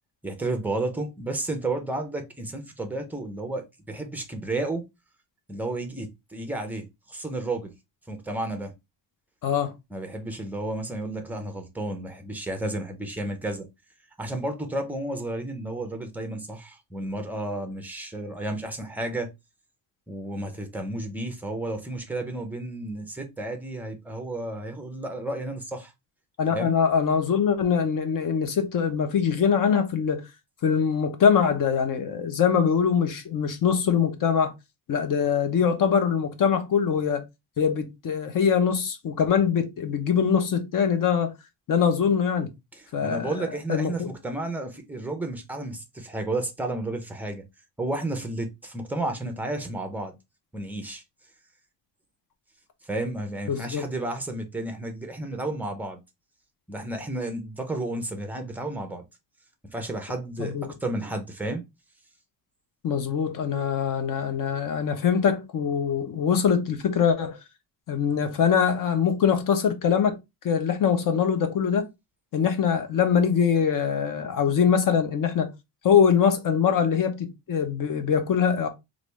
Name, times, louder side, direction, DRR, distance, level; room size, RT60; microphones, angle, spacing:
voice 1, 0.2-4.9 5.5-7.7 8.1-8.7 9.9-13.7 14.2-19.3 20.1-25.9 26.5-26.7 42.7-47.4 47.8-50.1 50.5-51.0 52.9-56.0 56.7-59.1 59.7-61.6, right 2 dB, 5° right, 0.5 m, -32 dB
voice 2, 9.4-9.7 26.4-30.2 30.6-34.5 34.9-37.2 37.6-41.3 41.7-42.5 42.9-44.1 53.5-53.9 60.4-60.7 62.8-67.4 67.9-70.2 70.4-71.9 72.3-75.5 75.8-78.7, left 7 dB, 50° left, 0.7 m, -23 dB
3.3 x 2.6 x 3.1 m
cardioid pair, 170°, 43 cm